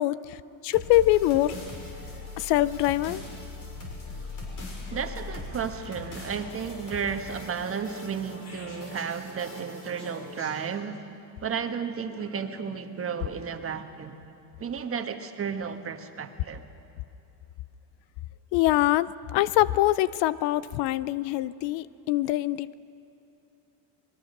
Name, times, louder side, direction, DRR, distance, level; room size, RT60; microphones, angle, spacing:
voice 1, 0.0-1.6 2.4-3.2 18.5-22.7, left 16 dB, 65° left, 0.7 m, -24 dB
sound 1, 0.7-10.8, left 2 dB, 45° left, 6.1 m, -41 dB
voice 2, 4.9-11.0 11.4-14.2 14.6-16.6, right 6 dB, 30° right, 1.5 m, -33 dB
25.0 x 21.5 x 6.7 m
cardioid pair, 120°, 44 cm